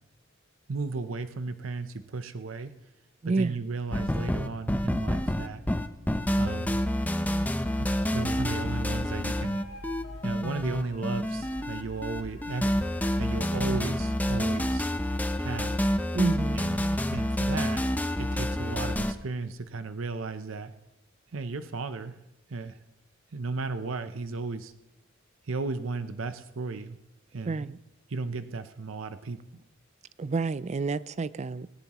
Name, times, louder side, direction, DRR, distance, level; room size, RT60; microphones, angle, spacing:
voice 1, 0.7-2.8 3.3-5.6 6.4-6.8 7.4-9.6 10.2-12.8 13.2-14.9 15.4-15.8 16.5-17.9 18.2-20.7 21.3-22.2 22.5-22.8 23.3-24.7 25.5-27.0 27.3-27.7 28.1-29.4, right 3 dB, 70° right, 0.7 m, -35 dB
voice 2, 3.2-3.6 16.1-16.6 27.5-27.8 30.2-31.7, right 3 dB, 35° right, 0.4 m, -29 dB
sound 1, 3.9-19.1, left 1 dB, 10° left, 0.6 m, -28 dB
sound 2, 7.7-14.7, left 1 dB, 80° left, 1.8 m, -45 dB
18.5 x 17.5 x 3.0 m
head